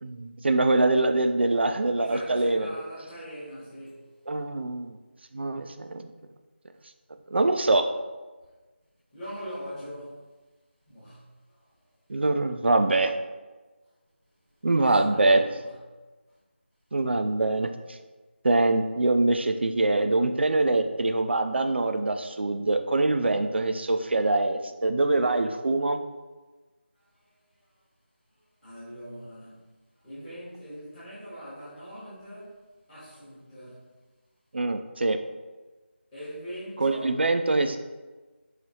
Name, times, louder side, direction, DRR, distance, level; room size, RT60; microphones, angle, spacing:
voice 1, 0.0-2.7 4.3-5.0 5.3-6.0 7.3-7.8 12.1-13.1 14.6-15.4 16.9-18.0 18.4-26.0 34.5-35.2 36.8-37.8, right 2 dB, 60° right, 7 dB, 0.4 m, -24 dB
voice 2, 2.0-4.2 9.1-10.2 10.9-11.7 14.6-15.2 15.5-15.7 26.9-27.4 28.6-29.7 30.0-32.6 32.9-33.9 36.1-37.1, equal, 5° left, -16 dB, 1.0 m, -42 dB
4.8 x 2.8 x 2.7 m, 1.2 s
figure-of-eight pair, 170°, 7 cm